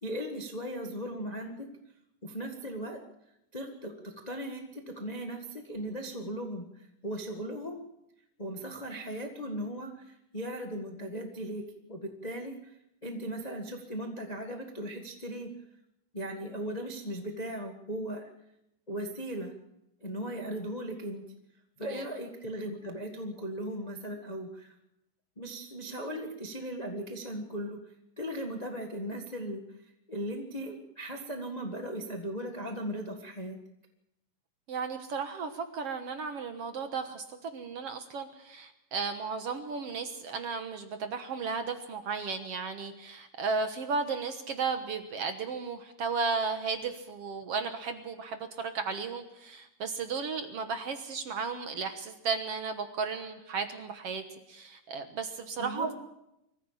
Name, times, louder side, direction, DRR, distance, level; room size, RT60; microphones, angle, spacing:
voice 1, 0.0-1.7 2.2-3.0 3.5-7.8 8.4-11.6 11.9-12.7 13.0-15.5 16.1-18.3 18.9-19.5 20.0-21.2 21.8-24.7 25.4-29.6 30.1-33.6 55.6-55.9, right 1 dB, 25° left, 3 dB, 0.8 m, -38 dB
voice 2, 34.7-55.9, right 5 dB, 60° right, 7 dB, 1.9 m, -34 dB
23.5 x 15.0 x 7.4 m, 0.87 s
omnidirectional pair, 3.8 m